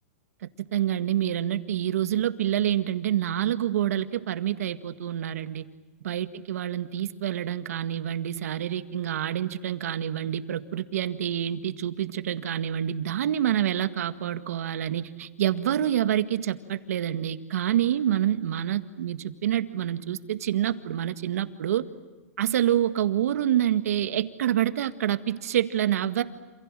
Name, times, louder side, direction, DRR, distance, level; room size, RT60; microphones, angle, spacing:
voice 1, 0.4-5.6 6.0-21.9 22.4-26.2, right 11 dB, 75° right, 10 dB, 1.8 m, -27 dB
28.0 x 28.0 x 7.7 m, 1.2 s
hypercardioid pair, 135°, 8 cm